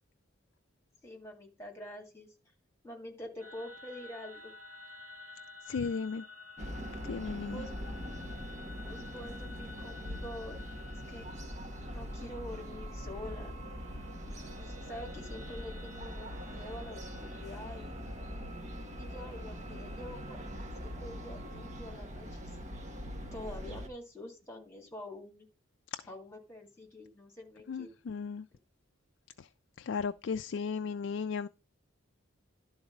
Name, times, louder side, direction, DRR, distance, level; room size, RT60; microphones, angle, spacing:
voice 1, 1.0-2.3 2.8-4.5 7.5-7.7 8.7-10.6 11.1-11.3 11.9-13.6 14.4-18.0 19.0-22.6 23.3-25.5 26.1-27.9, left 1 dB, 15° left, 2.2 m, -46 dB
sound 1, 3.4-21.9, left 1 dB, 80° right, 2.3 m, -52 dB
voice 2, 5.7-6.2 7.0-7.7 25.9-26.0 27.7-28.5 29.4-29.5 29.8-31.5, left 5 dB, 60° left, 0.4 m, -35 dB
sound 2, 6.6-23.9, equal, 35° right, 1.5 m, -42 dB
12.0 x 4.0 x 5.2 m
head